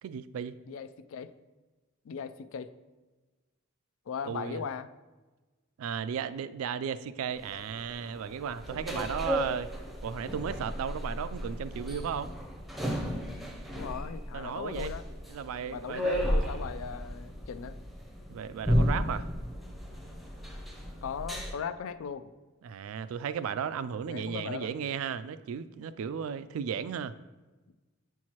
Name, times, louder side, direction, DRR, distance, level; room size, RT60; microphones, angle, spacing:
voice 1, 0.0-0.5 4.3-4.6 5.8-9.7 10.0-12.3 14.3-14.9 15.3-16.3 18.3-19.3 22.6-27.2, right 7 dB, 80° right, 15 dB, 0.3 m, -35 dB
voice 2, 0.7-1.3 2.0-2.7 4.1-4.9 13.7-15.0 15.7-17.8 21.0-22.3 24.0-24.7 27.7-27.8, left 6 dB, 75° left, 13 dB, 0.4 m, -38 dB
sound 1, 7.3-21.5, equal, ahead, 0.6 m, -34 dB
8.3 x 4.5 x 2.9 m, 1.2 s
head